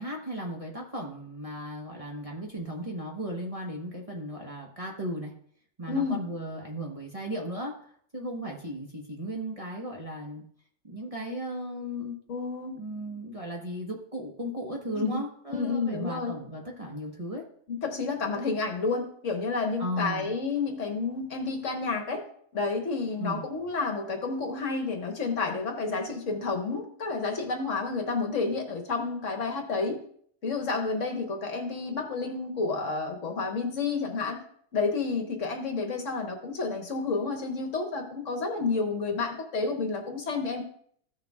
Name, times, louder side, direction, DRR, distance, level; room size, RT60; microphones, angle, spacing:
voice 1, 0.0-5.3 5.8-7.7 8.1-10.4 10.8-12.2 12.7-17.4 18.3-18.4 19.8-20.3 23.2-23.4, equal, 25° right, -1 dB, 1.2 m, -36 dB
voice 2, 5.9-6.2 12.3-12.8 14.9-15.2 15.5-16.4 17.8-22.2 22.5-30.0 30.4-34.4 34.7-40.6, left 4 dB, 60° left, 3 dB, 1.4 m, -30 dB
15.0 x 6.7 x 2.3 m, 0.63 s
omnidirectional pair, 1.5 m